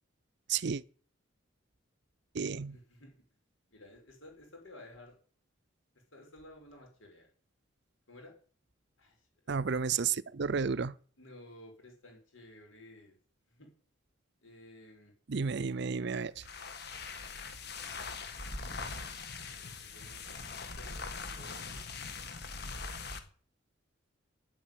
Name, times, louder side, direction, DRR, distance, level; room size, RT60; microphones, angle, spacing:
voice 1, 0.5-0.8 2.3-2.8 9.5-11.0 15.3-16.3, right 6 dB, 55° right, 0.5 m, -32 dB
voice 2, 2.7-3.2 3.7-5.2 6.1-7.3 8.1-8.3 9.0-9.2 11.2-13.2 13.5-13.7 14.4-15.1 16.1-16.3 17.1-18.2 19.6-20.2 20.5-21.8, left 1 dB, 80° left, 5.8 m, -54 dB
sound 1, 16.3-23.3, left 4 dB, 55° left, 1.6 m, -42 dB
9.4 x 8.4 x 9.5 m
head